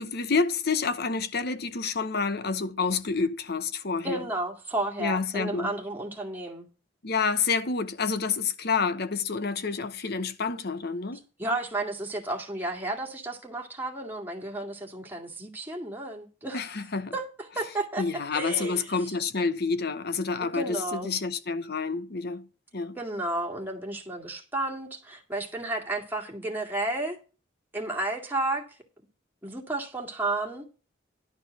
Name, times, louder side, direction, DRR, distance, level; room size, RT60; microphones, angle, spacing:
voice 1, 0.0-4.2 5.0-5.7 7.0-11.2 16.5-17.1 18.0-22.4 22.7-23.0, left 4 dB, 55° left, 0.9 m, -28 dB
voice 2, 4.0-6.7 11.4-16.6 17.1-18.0 18.3-19.1 20.4-21.1 23.0-27.2 27.7-28.6 29.4-30.7, right 2 dB, 10° right, 2.1 m, -32 dB
11.5 x 4.4 x 7.8 m
head